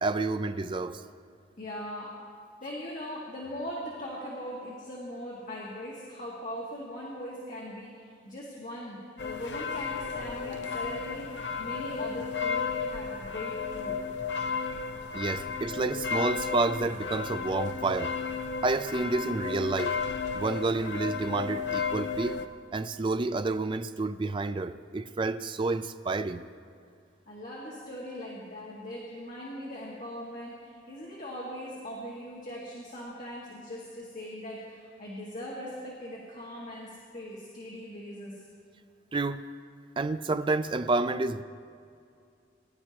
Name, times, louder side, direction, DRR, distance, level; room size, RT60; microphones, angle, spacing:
voice 1, 0.0-1.0 15.1-18.1 18.6-20.0 20.3-22.4 22.7-26.4 39.1-39.4 40.0-41.4, right 3 dB, 25° right, 0.4 m, -29 dB
voice 2, 1.6-2.2 2.6-14.0 27.3-38.4, equal, 45° left, 1.8 m, -40 dB
sound 1, 9.2-22.5, left 5 dB, 65° left, 0.7 m, -33 dB
20.5 x 11.5 x 3.0 m
head